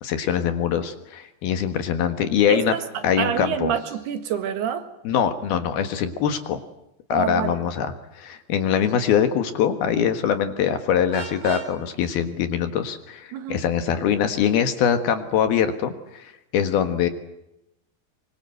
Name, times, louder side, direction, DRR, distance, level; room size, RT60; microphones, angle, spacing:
voice 1, 0.0-2.7 3.0-3.7 5.0-6.6 7.1-17.1, left 8 dB, 65° left, 3.2 m, -23 dB
voice 2, 2.5-4.9 7.1-7.6 13.3-13.7, right 8 dB, 70° right, 3.4 m, -27 dB
Vehicle horn car horn honking, 11.1-11.7, right 6 dB, 90° right, 5.6 m, -35 dB
25.0 x 24.5 x 7.9 m
omnidirectional pair, 5.1 m